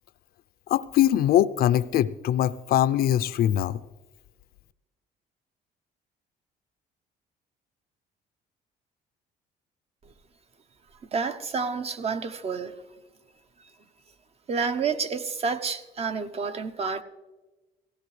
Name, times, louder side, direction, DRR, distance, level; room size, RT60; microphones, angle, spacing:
voice 1, 0.7-3.8, left 11 dB, 65° left, 0.5 m, -22 dB
voice 2, 11.1-12.8 14.5-17.0, right 5 dB, 35° right, 0.8 m, -29 dB
17.5 x 15.5 x 3.3 m
cardioid pair, 110°, 17 cm